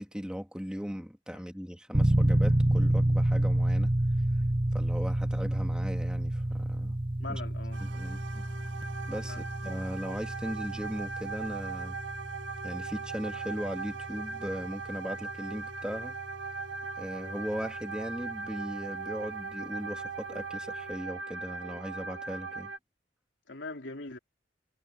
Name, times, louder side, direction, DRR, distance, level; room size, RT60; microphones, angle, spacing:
voice 1, 0.0-3.9 4.7-7.0 7.3-7.4 7.8-8.4 9.1-12.0 12.6-16.1 17.0-22.7, equal, 5° right, 3.3 m, -38 dB
sound 1, 1.9-18.7, right 1 dB, 30° right, 1.1 m, -30 dB
voice 2, 7.2-7.8 9.2-9.5 23.5-24.2, left 3 dB, 80° left, 3.4 m, -41 dB
sound 2, 7.7-22.8, right 4 dB, 75° right, 2.2 m, -39 dB
head